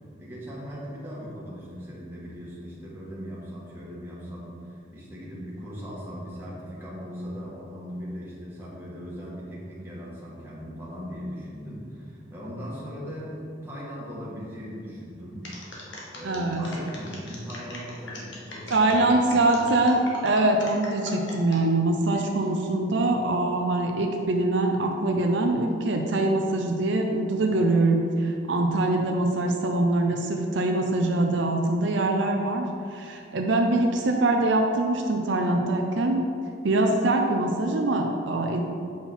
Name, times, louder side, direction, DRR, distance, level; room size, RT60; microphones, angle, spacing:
voice 1, 0.2-15.5 16.1-19.6, equal, 10° right, -7 dB, 1.7 m, -39 dB
sound 1, 15.4-21.6 22.1-22.5, left 1 dB, 75° left, 1.6 m, -41 dB
voice 2, 16.2-16.6 18.7-32.7 32.9-36.2 36.6-38.6, right 2 dB, 75° right, 2 dB, 0.6 m, -23 dB
7.6 x 5.8 x 4.4 m, 2.4 s
head